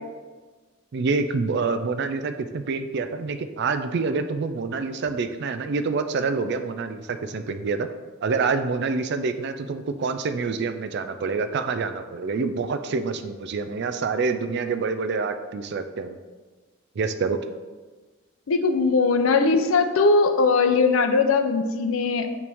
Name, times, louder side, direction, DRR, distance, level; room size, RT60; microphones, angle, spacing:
voice 1, 0.9-7.9 8.2-16.2 17.0-17.4, right 4 dB, 55° right, 9 dB, 0.4 m, -27 dB
voice 2, 18.5-22.3, left 4 dB, 90° left, 7 dB, 0.5 m, -20 dB
8.5 x 3.2 x 3.5 m, 1.3 s
head